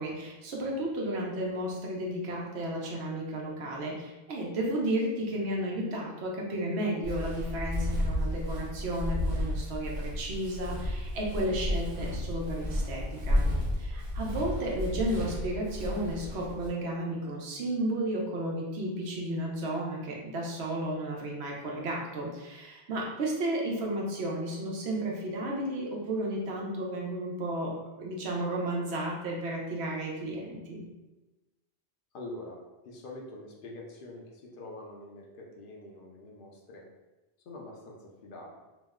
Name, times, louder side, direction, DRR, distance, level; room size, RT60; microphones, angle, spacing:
voice 1, 0.0-13.4 13.7-30.8, right 1 dB, 85° right, -2 dB, 1.0 m, -33 dB
Walk footsteps, 7.0-16.7, left 1 dB, 50° right, 0.9 m, -32 dB
voice 2, 32.1-32.6 32.8-36.9 37.5-38.6, left 2 dB, 60° left, -1 dB, 0.7 m, -45 dB
3.0 x 2.1 x 3.5 m, 1.1 s
omnidirectional pair, 1.1 m